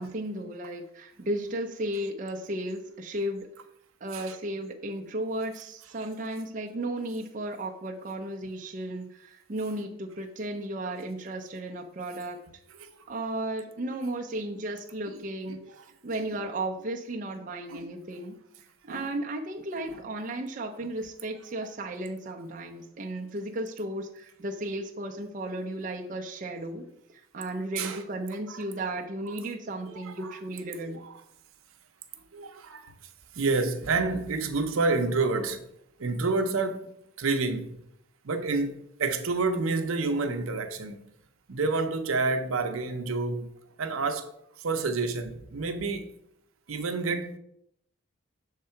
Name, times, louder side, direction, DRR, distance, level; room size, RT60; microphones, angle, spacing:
voice 1, 0.0-3.5 4.0-12.4 13.1-15.6 16.0-31.0, right 1 dB, 40° right, 0.5 m, -34 dB
voice 2, 30.1-30.4 30.8-30.9 32.3-32.9 33.3-35.6 36.0-36.9 37.2-37.8 38.2-41.0 41.5-43.5 43.8-44.3 44.6-46.1 46.7-47.4, right 3 dB, 75° right, 0.7 m, -29 dB
6.6 x 3.7 x 4.4 m
head